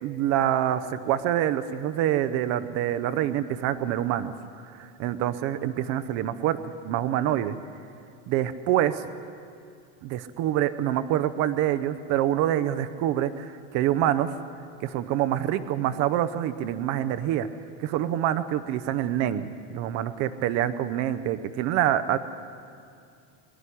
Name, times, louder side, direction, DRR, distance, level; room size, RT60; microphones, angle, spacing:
voice 1, 0.0-4.3 4.6-7.6 8.3-9.0 10.0-14.3 14.8-17.5 17.8-22.2, right 11 dB, 45° right, 11 dB, 0.7 m, -26 dB
23.0 x 12.0 x 9.9 m, 2.4 s
cardioid pair, 170°, 35 cm